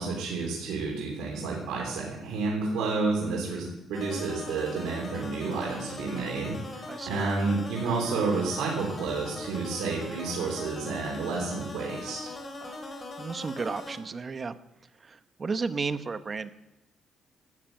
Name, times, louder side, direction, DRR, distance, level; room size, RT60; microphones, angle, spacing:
voice 1, 0.0-12.3, right 4 dB, 85° right, -3 dB, 3.7 m, -30 dB
sound 1, 3.9-14.0, left 2 dB, 30° left, 3.7 m, -40 dB
voice 2, 6.9-7.2 12.6-12.8 13.2-14.5 15.0-16.5, right 4 dB, 35° right, 12 dB, 0.9 m, -33 dB
13.0 x 10.0 x 7.8 m, 0.95 s
cardioid pair, 90°, 0 cm